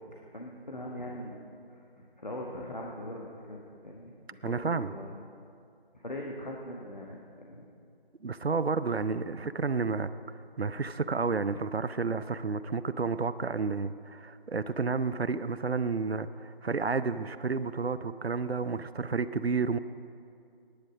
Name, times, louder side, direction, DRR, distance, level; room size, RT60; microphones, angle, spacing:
voice 1, 0.1-1.4 1.7-5.1 5.9-7.7, left 1 dB, 45° left, -2 dB, 1.4 m, -41 dB
voice 2, 4.4-4.9 8.2-10.1 10.6-19.8, right 4 dB, 80° right, 14 dB, 0.6 m, -31 dB
16.5 x 10.5 x 5.0 m, 2.5 s
figure-of-eight pair, 175°, 30 cm